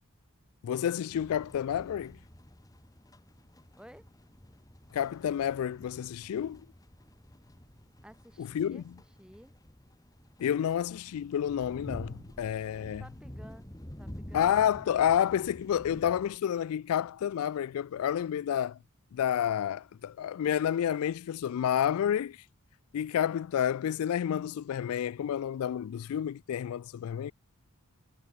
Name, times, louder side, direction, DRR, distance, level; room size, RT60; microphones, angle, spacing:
voice 1, 0.6-2.2 4.9-6.6 8.4-8.8 10.4-13.0 14.3-18.8 19.1-22.4 22.9-27.3, left 9 dB, 85° left, 0.3 m, -29 dB
sound 1, 1.1-16.4, equal, 15° left, 1.9 m, -49 dB
voice 2, 8.0-8.8 9.2-9.5 10.6-10.7 12.7-13.7 14.0-14.5, equal, 5° right, 6.4 m, -54 dB
head